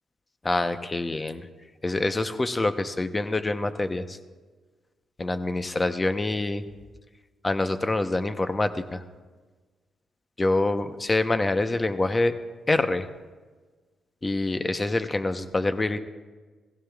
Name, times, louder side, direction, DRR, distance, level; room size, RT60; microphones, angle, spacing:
voice 1, 0.4-1.5 1.8-4.2 5.2-6.6 7.4-9.0 10.4-12.3 12.7-13.1 14.2-16.0, left 2 dB, 25° left, 9 dB, 0.8 m, -26 dB
16.5 x 16.0 x 2.4 m, 1.4 s
supercardioid pair, 60°, 0 cm